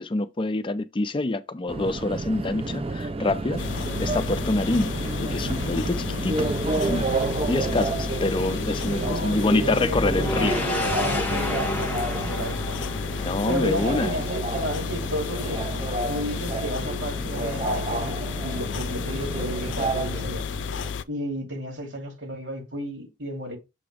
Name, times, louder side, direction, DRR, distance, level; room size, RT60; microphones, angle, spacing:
voice 1, 0.0-3.6 4.0-6.5 6.8-10.6 13.2-14.1, left 2 dB, 30° left, 0.4 m, -26 dB
Subway metro underground, 1.7-20.9, right 3 dB, 30° right, 0.4 m, -30 dB
sound 1, 3.6-21.0, left 6 dB, 85° left, 0.4 m, -32 dB
voice 2, 8.9-12.8 13.5-15.7 16.1-20.5 21.1-23.6, equal, 85° right, 2.8 m, -33 dB
sound 2, 9.9-14.2, left 1 dB, 10° left, 1.1 m, -30 dB
6.9 x 3.0 x 4.9 m
head